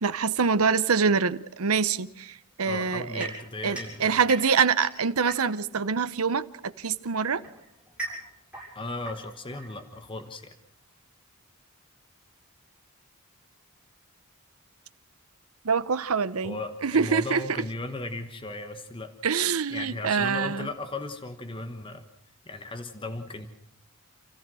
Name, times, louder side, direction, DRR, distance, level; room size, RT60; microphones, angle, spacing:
voice 1, 0.0-3.3 3.6-7.4 15.6-16.6 16.8-17.4 19.2-20.7, right 5 dB, 80° right, 14 dB, 0.8 m, -25 dB
voice 2, 2.6-4.2 8.7-10.5 16.4-19.1 19.7-22.0 22.4-23.5, left 2 dB, 25° left, 8 dB, 1.3 m, -36 dB
sound 1, 3.2-5.8 6.8-10.2, right 2 dB, 5° right, 7.3 m, -40 dB
29.0 x 14.5 x 6.2 m, 0.77 s
head